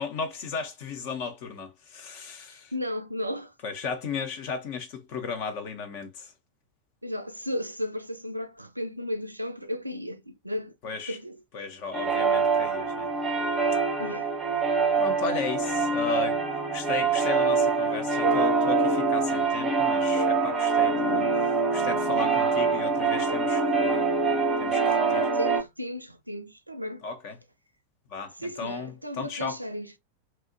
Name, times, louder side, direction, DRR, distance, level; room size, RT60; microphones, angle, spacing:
voice 1, 0.0-2.7 3.6-6.3 10.8-11.2 11.5-13.1 15.0-16.4 16.7-24.2 24.6-25.3 27.0-27.4 28.1-29.6, left 5 dB, 45° left, 0.4 m, -35 dB
voice 2, 2.5-3.5 7.0-10.7 11.1-11.4 14.0-14.3 25.3-27.1 28.4-29.9, equal, 85° right, 0.3 m, -34 dB
sound 1, 11.9-25.6, right 4 dB, 15° right, 0.6 m, -24 dB
2.8 x 2.0 x 2.5 m
figure-of-eight pair, 90°, 0 cm